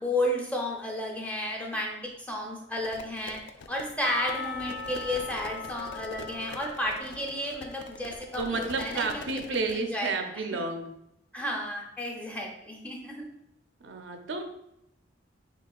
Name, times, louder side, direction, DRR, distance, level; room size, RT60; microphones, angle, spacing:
voice 1, 0.0-3.4 3.7-10.4 11.3-13.3, left 1 dB, 10° left, 0 dB, 0.5 m, -33 dB
sound 1, 2.7-9.8, left 4 dB, 70° left, 0.3 m, -45 dB
Percussion / Church bell, 4.0-8.8, left 5 dB, 55° left, 1.3 m, -40 dB
voice 2, 8.4-10.9 13.8-14.4, right 3 dB, 80° right, 5 dB, 0.5 m, -31 dB
6.2 x 2.4 x 2.3 m, 0.80 s
head